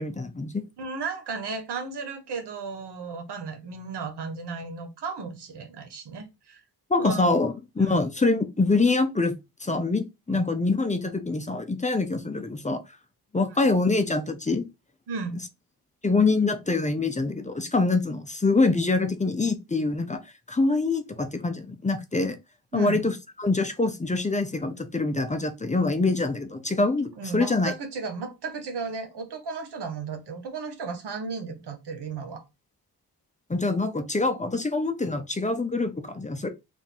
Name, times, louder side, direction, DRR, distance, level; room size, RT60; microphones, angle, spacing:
voice 1, 0.0-0.6 6.9-9.3 9.6-12.8 13.3-14.7 16.0-20.2 20.5-22.4 22.7-27.7 33.5-36.5, left 3 dB, 20° left, 0.7 m, -25 dB
voice 2, 0.8-6.6 7.0-7.3 7.8-8.0 10.3-10.4 15.1-15.4 22.7-23.1 27.2-32.4, right 4 dB, 85° right, 1.3 m, -34 dB
3.6 x 2.7 x 4.2 m
cardioid pair, 95°, 39 cm